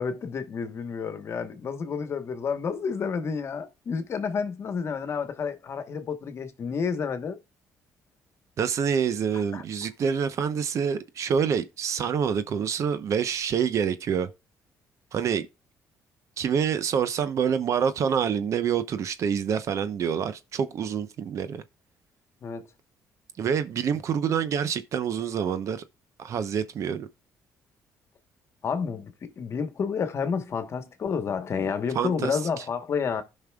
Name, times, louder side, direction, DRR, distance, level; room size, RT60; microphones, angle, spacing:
voice 1, 0.0-7.4 9.3-9.6 22.4-22.6 28.6-33.2, left 6 dB, 45° left, 1.3 m, -30 dB
voice 2, 8.6-14.3 15.1-15.5 16.4-21.6 23.4-25.8 26.2-27.1 31.9-32.4, right 7 dB, 55° right, 0.9 m, -27 dB
15.5 x 5.5 x 2.4 m
cardioid pair, 110°, 6 cm